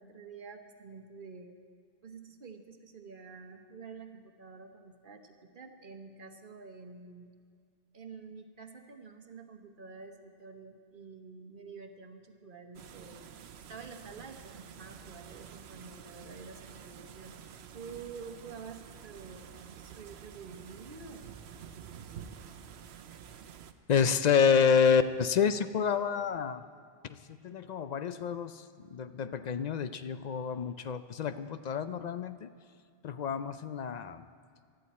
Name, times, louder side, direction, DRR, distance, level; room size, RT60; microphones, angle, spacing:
voice 1, 0.0-1.6 2.0-7.3 7.9-13.2 13.7-17.4 17.7-21.3 24.6-24.8, right 5 dB, 55° right, 5 dB, 1.2 m, -48 dB
sound 1, 12.7-23.7, right 8 dB, 80° right, 0.9 m, -49 dB
voice 2, 23.9-26.6 27.0-32.5 33.0-34.3, left 6 dB, 55° left, 11 dB, 0.5 m, -28 dB
19.5 x 13.0 x 4.2 m, 2.1 s
omnidirectional pair, 1.1 m